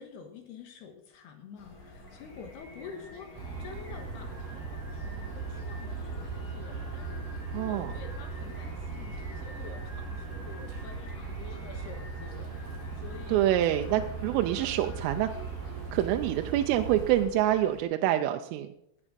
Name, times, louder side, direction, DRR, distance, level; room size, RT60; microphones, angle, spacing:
voice 1, 0.0-13.5, left 6 dB, 65° left, 5 dB, 3.0 m, -48 dB
sound 1, 1.6-17.8, left 3 dB, 40° left, 3.0 m, -51 dB
Singing, 1.6-17.8, equal, 20° left, 3.7 m, -53 dB
sound 2, 3.3-17.2, right 4 dB, 45° right, 8.9 m, -38 dB
voice 2, 7.5-7.9 13.3-15.3 15.9-18.7, right 12 dB, 80° right, 6 dB, 3.2 m, -26 dB
17.5 x 9.8 x 5.2 m, 0.77 s
omnidirectional pair, 5.9 m